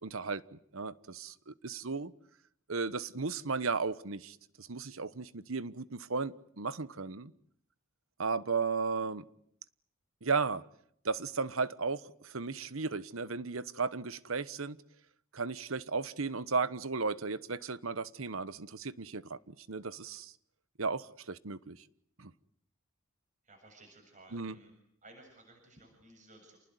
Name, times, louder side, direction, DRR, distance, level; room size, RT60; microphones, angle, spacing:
voice 1, 0.0-2.1 2.7-7.3 8.2-9.2 10.2-10.6 11.0-14.8 15.3-20.3 20.8-21.9 22.2-22.3 24.3-24.6, right 4 dB, 80° right, 1.2 m, -35 dB
voice 2, 23.4-24.7 25.0-26.6, right 2 dB, 35° right, 7.5 m, -57 dB
29.0 x 20.0 x 9.5 m
head